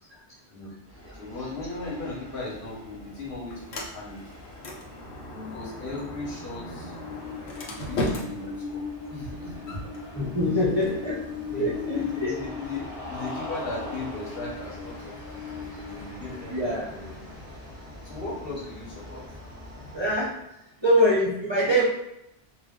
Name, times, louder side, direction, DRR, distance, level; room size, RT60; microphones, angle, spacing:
voice 1, 0.5-4.3 5.5-6.9 7.6-8.8 9.1-9.8 10.3-10.9 11.5-17.3 18.0-19.4 19.9-20.0, left 3 dB, 60° left, -5 dB, 1.2 m, -37 dB
Train, 0.9-20.3, left 4 dB, 15° left, 0.6 m, -41 dB
Sliding door, 2.4-12.4, left 1 dB, 75° left, 1.0 m, -38 dB
voice 2, 5.3-5.7 10.1-11.2 11.6-12.3 16.5-16.8 19.9-20.3 20.8-21.8, equal, 30° right, -7 dB, 0.6 m, -24 dB
Cheering, 7.0-20.4, left 1 dB, ahead, 1.2 m, -45 dB
2.4 x 2.4 x 3.5 m, 0.85 s
omnidirectional pair, 1.1 m